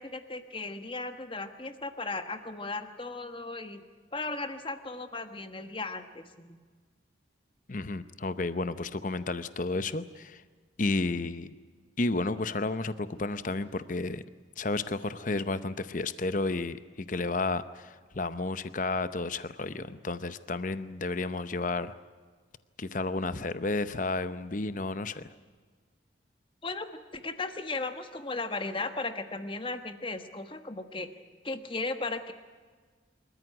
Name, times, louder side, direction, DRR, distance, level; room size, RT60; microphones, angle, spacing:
voice 1, 0.0-3.8 4.1-6.6 26.6-31.1 31.4-32.3, left 3 dB, 25° left, 9 dB, 1.4 m, -36 dB
voice 2, 7.7-10.4 10.8-11.5 12.0-14.2 14.6-21.9 22.8-25.3, left 3 dB, 40° left, 13 dB, 0.7 m, -32 dB
26.5 x 14.0 x 10.0 m, 1.5 s
head